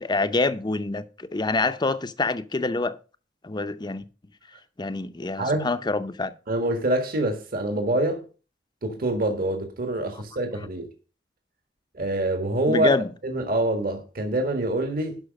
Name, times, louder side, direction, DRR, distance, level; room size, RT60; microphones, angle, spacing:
voice 1, 0.0-3.0 3.4-4.0 4.8-6.3 12.7-13.1, left 3 dB, 25° left, 0.6 m, -26 dB
voice 2, 5.4-5.7 6.5-8.2 8.8-10.9 11.9-13.0 13.2-15.2, right 1 dB, 55° right, 1.8 m, -25 dB
11.5 x 5.6 x 5.3 m
head